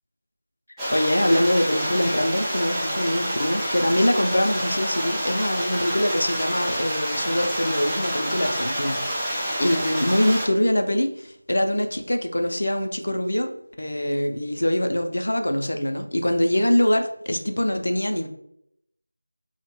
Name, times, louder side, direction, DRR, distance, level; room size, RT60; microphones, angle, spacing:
sound 1, 0.8-10.5, equal, 5° right, 0.4 m, -28 dB
voice 1, 0.9-18.3, left 1 dB, 75° left, 5 dB, 0.4 m, -23 dB
2.8 x 2.1 x 3.0 m, 0.75 s
figure-of-eight pair, 175°, 0 cm